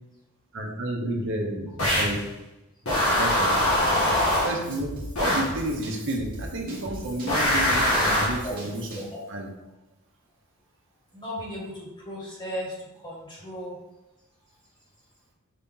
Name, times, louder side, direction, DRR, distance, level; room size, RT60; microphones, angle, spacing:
voice 1, 0.5-2.2 3.2-3.7 4.4-4.9 5.2-9.0 9.3-9.5, right 1 dB, 60° right, 0 dB, 0.7 m, -31 dB
sound 1, 1.8-2.2 2.9-4.6 5.2-5.6 7.3-8.4, left 1 dB, 75° left, 1.6 m, -23 dB
Drum kit / Drum, 3.6-9.2, equal, 40° right, 1.2 m, -39 dB
voice 2, 11.1-13.7, equal, 20° left, -4 dB, 1.2 m, -36 dB
5.0 x 2.8 x 3.6 m, 0.95 s
head